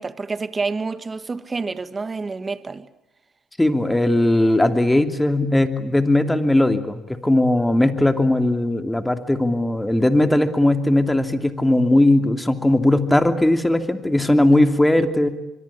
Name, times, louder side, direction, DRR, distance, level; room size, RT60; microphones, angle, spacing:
voice 1, 0.0-2.9, right 4 dB, 30° right, 1.8 m, -28 dB
voice 2, 3.6-15.3, left 1 dB, 10° left, 2.9 m, -18 dB
25.5 x 23.5 x 8.6 m
supercardioid pair, 65°, 0 cm